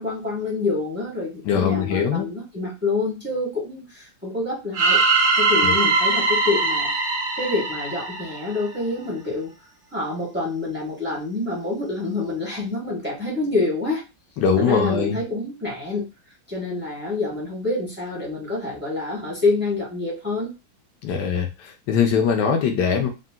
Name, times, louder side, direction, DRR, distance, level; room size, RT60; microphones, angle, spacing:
voice 1, 0.0-5.0 5.4-6.9 7.4-9.5 9.9-14.0 14.6-16.1 16.5-20.5, left 3 dB, 10° right, -5 dB, 0.5 m, -27 dB
voice 2, 1.4-2.3 5.6-5.7 14.4-15.2 21.0-23.1, left 6 dB, 70° left, 4 dB, 1.0 m, -21 dB
sound 1, 4.7-8.8, right 3 dB, 65° right, 1.5 m, -21 dB
3.8 x 2.1 x 2.2 m, 0.27 s
omnidirectional pair, 2.2 m